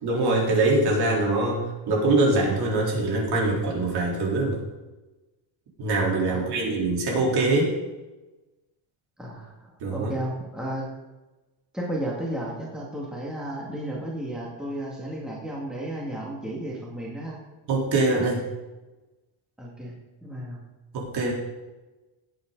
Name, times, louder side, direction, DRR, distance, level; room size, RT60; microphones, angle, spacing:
voice 1, 0.0-4.6 5.8-7.7 9.8-10.1 17.7-18.5 20.9-21.3, right 2 dB, 55° right, -2 dB, 3.7 m, -23 dB
voice 2, 9.2-10.9 11.7-17.4 19.6-20.0 20.2-20.6, right 1 dB, ahead, -5 dB, 2.1 m, -33 dB
17.0 x 8.8 x 4.0 m, 1.1 s
cardioid pair, 170°, 47 cm